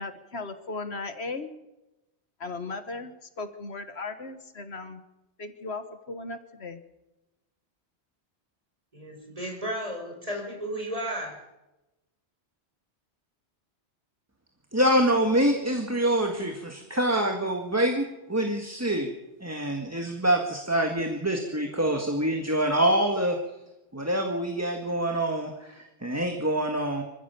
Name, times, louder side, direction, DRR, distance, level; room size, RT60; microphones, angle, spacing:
voice 1, 0.0-1.5 2.4-5.0 5.4-6.8, left 3 dB, 70° left, 9 dB, 1.7 m, -37 dB
voice 2, 8.9-11.4, equal, 30° right, 2 dB, 5.4 m, -34 dB
voice 3, 14.7-19.1 19.4-23.4 23.9-27.0, right 1 dB, 15° right, 3 dB, 1.8 m, -25 dB
26.0 x 15.0 x 7.0 m, 0.97 s
omnidirectional pair, 1.1 m